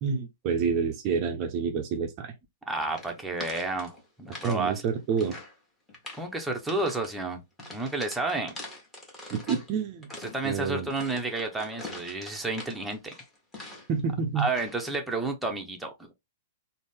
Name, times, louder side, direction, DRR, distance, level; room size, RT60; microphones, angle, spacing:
voice 1, 0.0-2.3 4.4-5.4 9.3-10.1 10.4-10.9 13.9-14.5, right 6 dB, 35° right, 0.5 m, -28 dB
voice 2, 2.7-3.9 4.2-4.8 6.2-7.4 7.7-8.6 10.2-13.1 14.4-16.1, right 2 dB, 5° right, 0.7 m, -31 dB
sound 1, 2.9-4.6 4.9-5.6 5.9-6.3 6.7-7.1 7.6-9.7 10.0-14.0 14.4-14.8, left 2 dB, 10° left, 1.2 m, -43 dB
3.8 x 2.1 x 3.5 m
figure-of-eight pair, 105°, 0 cm